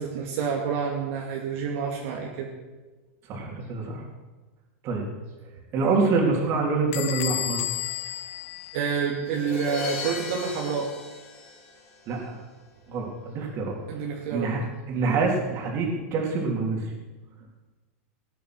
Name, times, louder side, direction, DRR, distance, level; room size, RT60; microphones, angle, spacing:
voice 1, 0.0-2.5 8.7-10.9 13.9-14.5, right 6 dB, 60° right, -2 dB, 2.6 m, -28 dB
voice 2, 3.3-4.0 4.8-5.1 5.7-7.6 12.1-12.4 12.9-13.7 14.3-14.6 14.9-16.8, right 4 dB, 40° right, 0 dB, 3.6 m, -26 dB
Bell / Squeak, 6.9-9.4, left 14 dB, 60° left, 1.0 m, -32 dB
Crash cymbal, 9.3-12.2, left 4 dB, 30° left, 4.7 m, -37 dB
19.0 x 9.1 x 6.2 m, 1.2 s
supercardioid pair, 130°, 7 cm